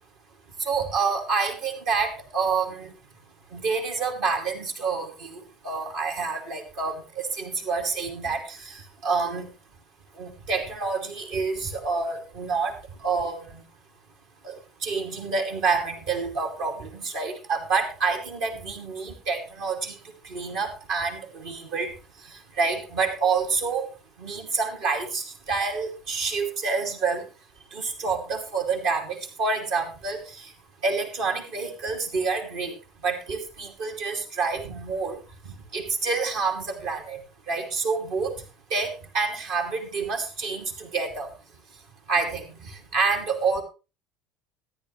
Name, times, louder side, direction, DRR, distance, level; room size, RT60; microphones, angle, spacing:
voice 1, 0.6-2.9 3.5-9.5 10.2-12.8 13.0-13.6 14.4-20.0 20.2-21.9 22.3-23.9 24.2-27.2 27.7-30.5 30.8-32.7 33.0-35.2 35.4-37.2 37.5-38.3 38.7-41.3 42.1-43.6, right 4 dB, 60° right, 3 dB, 2.6 m, -28 dB
14.0 x 10.0 x 3.3 m, 0.30 s
figure-of-eight pair, 65°, 0 cm